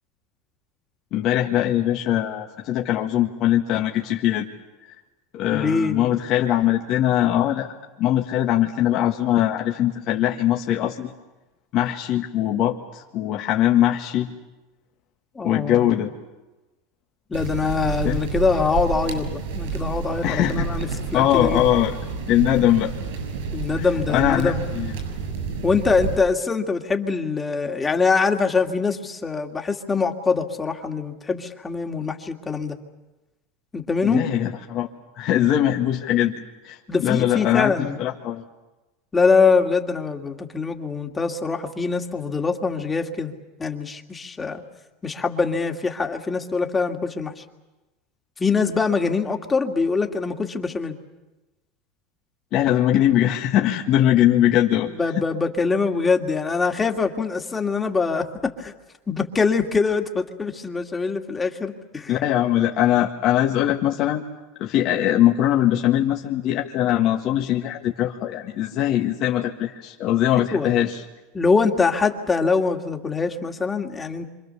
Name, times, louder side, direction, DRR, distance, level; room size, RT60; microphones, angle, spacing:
voice 1, 1.1-4.5 5.3-7.7 8.0-11.1 11.7-14.3 15.4-16.1 18.0-18.2 20.2-20.7 21.1-22.0 22.3-22.9 23.8-24.9 34.0-34.9 35.2-38.4 52.5-55.2 62.1-64.2 64.6-71.0, left 12 dB, 55° left, 0 dB, 1.8 m, -21 dB
voice 2, 5.5-6.1 15.3-15.9 17.3-21.7 23.5-24.6 25.6-32.8 33.7-34.2 36.9-38.0 39.1-43.3 43.6-44.6 45.0-47.4 48.4-50.9 54.9-58.7 59.1-62.2 70.5-70.7 71.3-74.3, left 4 dB, 20° left, 4 dB, 2.4 m, -23 dB
sound 1, 17.3-26.2, right 5 dB, 80° right, 6.9 m, -29 dB
27.5 x 26.0 x 7.1 m, 1.1 s
supercardioid pair, 110°, 0 cm